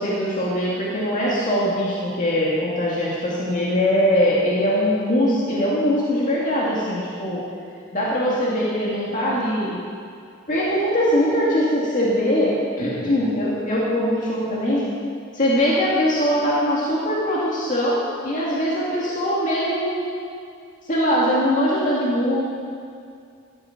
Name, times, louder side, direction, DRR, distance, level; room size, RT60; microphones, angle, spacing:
voice 1, 0.0-7.4 7.9-9.8 10.5-14.9 15.3-20.0 20.9-22.4, equal, 35° left, -6 dB, 2.2 m, -21 dB
13.5 x 12.5 x 5.9 m, 2.4 s
head